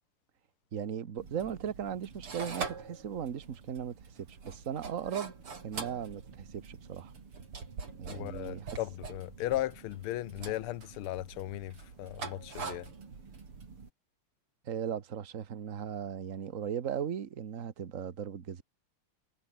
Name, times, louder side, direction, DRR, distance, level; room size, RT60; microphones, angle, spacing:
voice 1, 0.7-4.0 4.3-5.3 5.6-7.1 8.0-8.8 14.6-18.6, right 8 dB, 40° right, 1.5 m, -37 dB
sound 1, 1.2-13.9, right 5 dB, 85° right, 4.4 m, -44 dB
voice 2, 8.1-12.9, left 15 dB, 80° left, 1.7 m, -36 dB
omnidirectional pair, 2.4 m